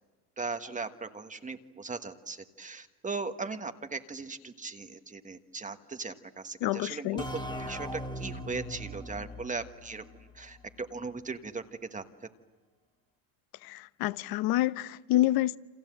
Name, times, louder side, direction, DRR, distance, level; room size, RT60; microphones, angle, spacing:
voice 1, 0.4-10.0 10.3-11.6 11.9-12.0, right 4 dB, 15° right, 1.3 m, -38 dB
voice 2, 6.6-7.2 13.6-15.6, left 15 dB, 55° left, 0.9 m, -28 dB
sound 1, 7.2-10.7, equal, 10° left, 1.7 m, -40 dB
29.0 x 27.0 x 7.7 m
supercardioid pair, 115°, 43 cm